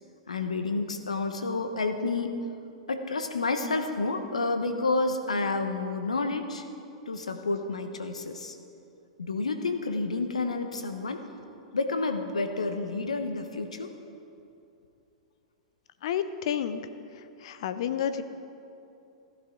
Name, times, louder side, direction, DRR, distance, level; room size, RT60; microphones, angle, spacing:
voice 1, 0.3-2.4 2.9-6.6 7.1-8.6 9.2-11.3 11.7-13.9, left 3 dB, 80° left, 7 dB, 1.0 m, -30 dB
voice 2, 16.0-16.8 17.4-18.2, left 9 dB, 60° left, 11 dB, 0.7 m, -30 dB
16.0 x 11.5 x 3.8 m, 2.7 s
figure-of-eight pair, 105°, 3 cm